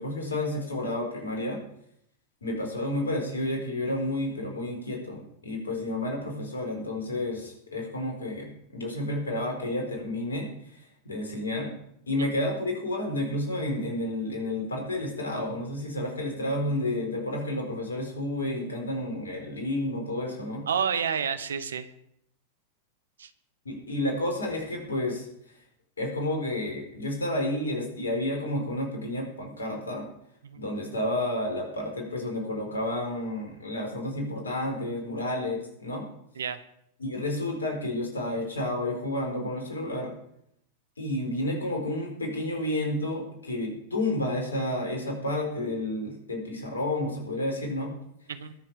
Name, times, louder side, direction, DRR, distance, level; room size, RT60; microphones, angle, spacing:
voice 1, 0.0-1.6 2.4-11.7 12.1-20.6 23.6-25.3 26.0-30.1 30.5-36.1 37.0-40.1 41.0-47.9, left 1 dB, 75° left, 1 dB, 4.8 m, -31 dB
voice 2, 20.7-21.9 23.2-23.3 30.4-30.6 36.4-36.6 48.3-48.5, right 7 dB, 65° right, 12 dB, 1.1 m, -29 dB
21.5 x 7.3 x 5.1 m, 0.72 s
figure-of-eight pair, 90°, 0 cm